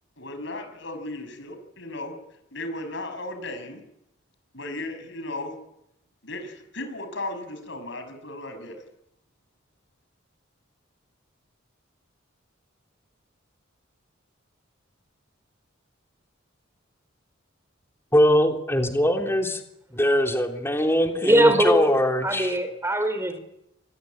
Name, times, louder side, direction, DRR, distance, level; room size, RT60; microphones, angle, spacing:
voice 1, 0.2-2.1 2.5-3.8 4.5-5.5 6.2-8.8, left 2 dB, 65° left, 8 dB, 6.1 m, -35 dB
voice 2, 18.1-19.6 19.9-22.6, equal, 10° left, 4 dB, 3.4 m, -22 dB
voice 3, 21.2-21.9 22.2-23.4, right 1 dB, 15° right, 9 dB, 4.2 m, -21 dB
27.0 x 20.0 x 9.4 m, 0.83 s
head